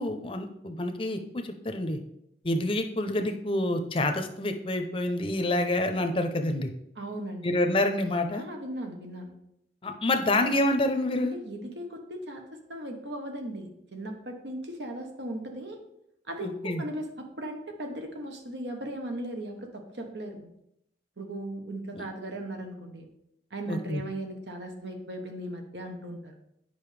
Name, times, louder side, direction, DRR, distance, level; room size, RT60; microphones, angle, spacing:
voice 1, 0.0-2.0 2.4-6.7 7.4-8.4 9.8-11.3 16.4-16.8 21.9-22.0 23.7-24.0, left 1 dB, 30° left, 6 dB, 0.6 m, -27 dB
voice 2, 7.0-7.5 8.3-9.3 11.2-12.4 12.7-15.8 16.3-20.5 21.2-23.1 23.5-26.4, right 1 dB, 75° right, 4 dB, 1.1 m, -37 dB
8.8 x 5.3 x 3.3 m, 0.80 s
head